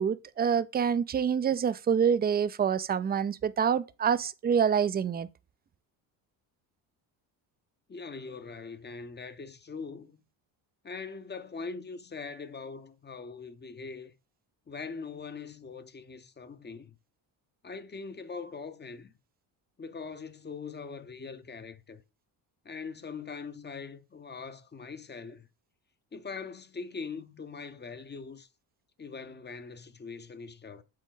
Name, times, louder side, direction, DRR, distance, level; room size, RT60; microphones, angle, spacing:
voice 1, 0.0-5.3, right 7 dB, 25° right, 0.3 m, -26 dB
voice 2, 7.9-10.2 10.8-14.1 14.7-16.9 17.6-19.1 19.8-22.0 22.6-25.5 26.1-28.5 29.0-30.8, left 4 dB, 20° left, 0.7 m, -42 dB
7.5 x 4.0 x 3.8 m
cardioid pair, 85°, 47 cm